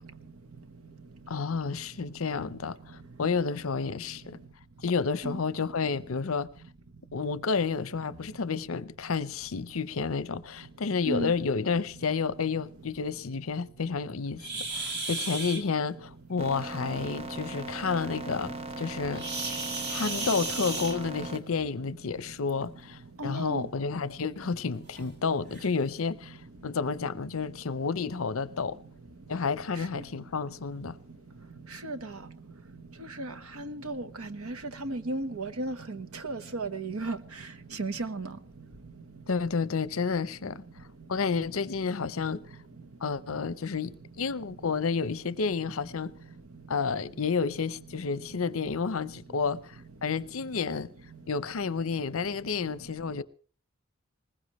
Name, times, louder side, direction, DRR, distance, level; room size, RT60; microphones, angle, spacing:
voice 1, 1.3-4.4 4.8-6.5 7.1-19.3 19.9-28.8 29.3-31.0 39.3-40.6 41.1-42.4 43.0-46.1 46.7-50.9 51.3-53.2, left 5 dB, 65° left, 0.7 m, -30 dB
sound 1, 14.4-15.6 19.1-21.4 22.6-22.8 23.4-23.5 24.0-24.1 24.9-25.0 25.5-25.7, right 3 dB, 50° right, 2.4 m, -34 dB
sound 2, 16.4-21.4, right 2 dB, 30° right, 1.1 m, -38 dB
voice 2, 23.2-23.7 31.8-32.0 33.2-33.3 33.6-34.6 34.8-36.0 36.2-37.2 37.8-38.3, right 2 dB, 75° right, 1.2 m, -34 dB
21.0 x 19.5 x 3.1 m
head